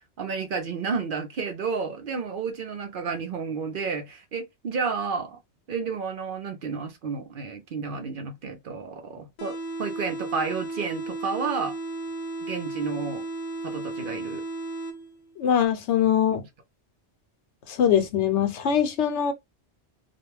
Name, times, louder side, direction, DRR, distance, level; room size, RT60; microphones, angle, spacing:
voice 1, 0.2-5.4 5.7-11.7 12.4-13.2 13.6-14.4, right 5 dB, 60° right, 0.7 m, -31 dB
sound 1, 9.4-15.4, right 2 dB, 45° left, 0.7 m, -34 dB
voice 2, 15.4-16.4 17.8-19.3, left 9 dB, 80° left, 0.9 m, -22 dB
2.4 x 2.1 x 3.1 m
omnidirectional pair, 1.2 m